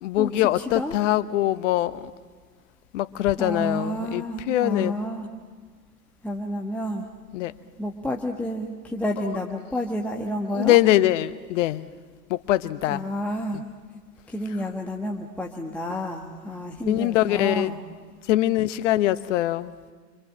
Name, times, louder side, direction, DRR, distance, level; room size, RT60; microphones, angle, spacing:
voice 1, 0.0-2.1 2.9-5.0 7.3-7.5 10.5-11.8 12.3-13.0 13.5-13.6 16.9-17.7 18.3-19.7, left 14 dB, 50° left, 14 dB, 1.0 m, -23 dB
voice 2, 0.6-1.0 3.4-5.3 6.2-7.1 7.8-10.8 12.9-13.6 14.3-17.8, equal, 5° left, 0 dB, 1.3 m, -30 dB
26.5 x 25.5 x 7.6 m, 1.5 s
hypercardioid pair, 110°, 48 cm